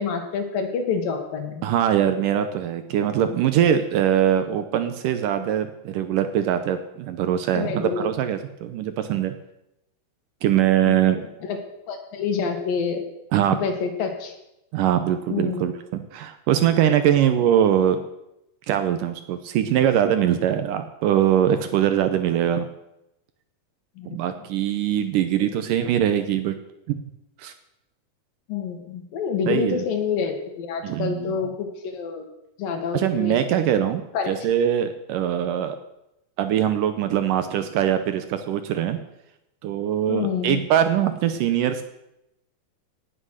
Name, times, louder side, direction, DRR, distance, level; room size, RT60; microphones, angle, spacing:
voice 1, 0.0-1.6 7.5-8.1 10.9-11.6 11.9-13.0 13.5-14.3 15.3-15.7 24.0-24.2 28.5-32.2 32.6-33.4 34.1-34.3 40.1-40.6, left 6 dB, 70° left, 4 dB, 3.4 m, -27 dB
voice 2, 1.6-9.3 10.4-11.2 13.3-13.6 14.7-18.0 18.7-22.7 24.1-26.6 26.9-27.0 27.4-27.5 29.5-29.8 30.8-31.4 32.9-35.8 36.4-39.0 39.6-41.8, right 10 dB, 75° right, 9 dB, 2.2 m, -22 dB
18.5 x 7.7 x 6.5 m, 0.87 s
omnidirectional pair, 4.3 m